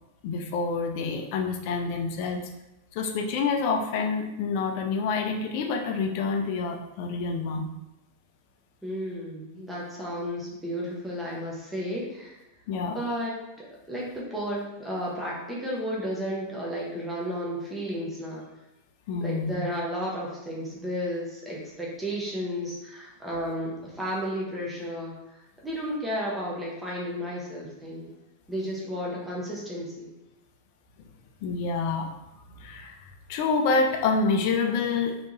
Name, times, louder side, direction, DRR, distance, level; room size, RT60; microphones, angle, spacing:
voice 1, 0.2-2.4 2.9-7.7 12.7-13.0 19.1-19.6 31.4-32.1 32.6-33.0 33.3-35.2, left 4 dB, 45° left, 3 dB, 0.5 m, -27 dB
voice 2, 8.8-12.4 12.8-18.4 19.2-28.1 28.5-30.1, equal, 5° right, -5 dB, 0.9 m, -33 dB
3.4 x 2.9 x 2.6 m, 0.92 s
figure-of-eight pair, 90°, 0 cm